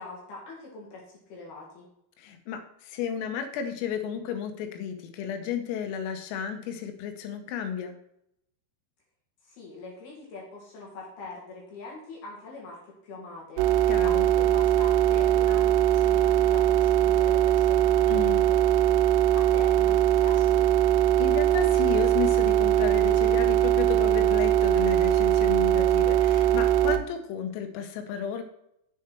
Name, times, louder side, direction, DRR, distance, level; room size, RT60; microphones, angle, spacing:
voice 1, 0.0-1.9 9.4-20.7, left 3 dB, 55° left, -3 dB, 3.4 m, -43 dB
voice 2, 2.2-8.0 13.9-14.3 18.1-18.5 21.2-28.4, left 8 dB, 80° left, 7 dB, 3.5 m, -33 dB
sound 1, 13.6-27.0, right 12 dB, 90° right, 3.5 m, -21 dB
7.7 x 7.2 x 4.4 m, 0.79 s
omnidirectional pair, 6.0 m